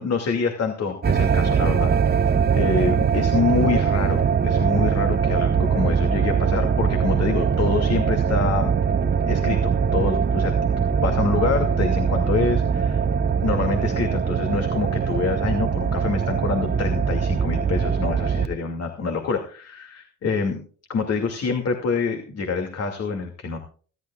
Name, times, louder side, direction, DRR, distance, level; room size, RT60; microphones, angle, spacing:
voice 1, 0.0-1.9 2.2-8.7 9.3-10.6 11.0-20.6 20.9-23.6, left 4 dB, 55° left, 4 dB, 2.5 m, -26 dB
sound 1, 1.0-18.5, right 7 dB, 35° right, 0.8 m, -22 dB
26.0 x 11.5 x 2.4 m, 0.41 s
cardioid pair, 90°, 30 cm